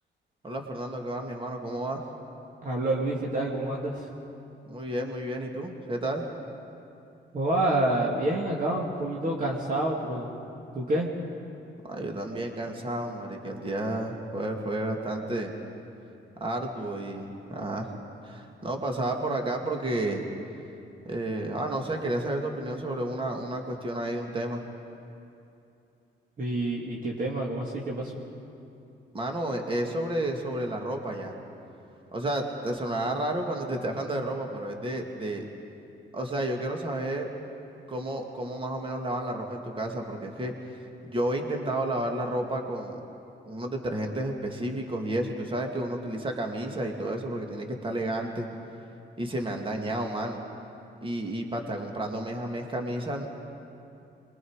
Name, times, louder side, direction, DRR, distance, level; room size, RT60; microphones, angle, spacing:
voice 1, 0.4-2.0 4.7-6.3 11.9-15.5 16.4-17.9 18.2-20.2 21.0-24.6 29.1-31.4 32.1-35.5 36.1-37.3 37.9-40.5 41.0-43.0 43.5-48.5 49.2-50.4 51.0-53.3, right 1 dB, 25° right, 2 dB, 2.2 m, -31 dB
voice 2, 2.6-4.1 7.3-10.3 10.7-11.1 26.4-28.2, right 1 dB, 45° right, -3 dB, 2.5 m, -28 dB
26.5 x 22.5 x 4.8 m, 2.8 s
cardioid pair, 90°, 20 cm